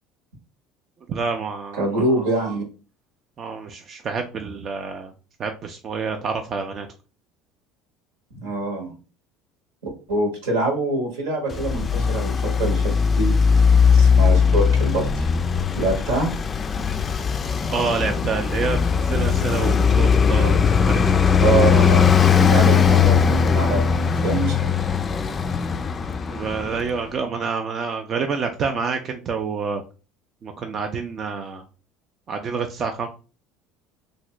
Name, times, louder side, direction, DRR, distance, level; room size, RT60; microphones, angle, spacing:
voice 1, 1.1-2.0 3.4-5.1 5.4-6.9 17.7-20.6 20.9-21.2 26.3-29.8 30.4-31.6 32.3-33.1, right 5 dB, 45° right, 5 dB, 0.4 m, -28 dB
voice 2, 1.8-2.6 8.4-8.9 10.1-13.3 13.9-15.2 15.7-16.3 21.4-24.0 24.2-24.7, right 2 dB, 85° right, 2 dB, 1.2 m, -25 dB
Traffic noise roadway noise, 11.5-27.0, left 6 dB, 30° left, 0.3 m, -19 dB
2.7 x 2.6 x 3.1 m, 0.34 s
hypercardioid pair, 80°, 0 cm